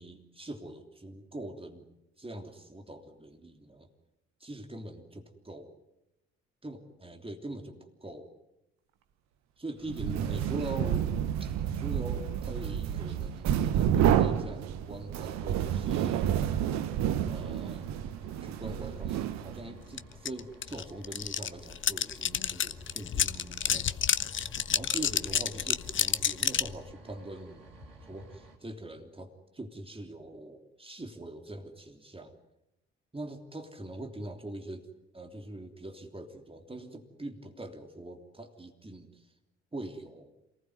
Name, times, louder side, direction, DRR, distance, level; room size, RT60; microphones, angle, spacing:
voice 1, 0.0-1.9 2.2-3.9 4.4-5.7 6.6-8.3 9.6-16.4 17.3-17.9 18.4-24.1 24.7-27.6 28.0-32.4 33.1-34.9 35.1-39.3 39.7-40.3, right 1 dB, 15° right, 4 dB, 3.2 m, -43 dB
sound 1, 9.9-19.8, right 10 dB, 60° right, 1.2 m, -29 dB
sound 2, 15.3-28.6, right 1 dB, 80° right, 3.6 m, -54 dB
sound 3, 20.0-20.1 20.3-26.7, left 8 dB, 40° left, 1.0 m, -29 dB
28.0 x 19.5 x 9.6 m, 0.88 s
figure-of-eight pair, 40°, 31 cm